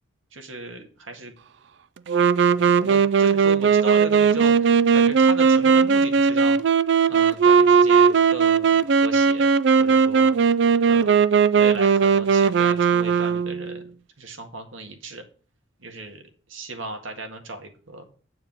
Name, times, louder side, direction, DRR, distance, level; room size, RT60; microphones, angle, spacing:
voice 1, 0.3-1.3 2.5-6.6 7.1-9.5 9.8-10.3 10.9-11.2 11.6-13.9 14.2-15.2 15.8-16.2 16.5-18.1, right 2 dB, 80° right, 5 dB, 1.8 m, -36 dB
Wind instrument woodwind instrument, 2.1-13.8, right 6 dB, 60° right, 0.4 m, -18 dB
8.9 x 4.7 x 7.4 m, 0.40 s
head